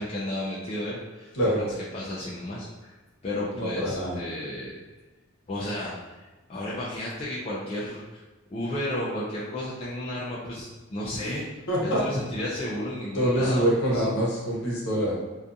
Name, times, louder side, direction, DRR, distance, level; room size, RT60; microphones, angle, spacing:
voice 1, 0.0-1.3 1.9-2.9 3.2-4.8 5.5-8.2 8.5-11.4 11.8-14.0, left 1 dB, 30° left, -7 dB, 0.3 m, -33 dB
voice 2, 3.5-4.2 11.7-12.0 13.1-15.2, equal, 55° left, -5 dB, 0.8 m, -25 dB
2.4 x 2.4 x 2.6 m, 1.2 s
head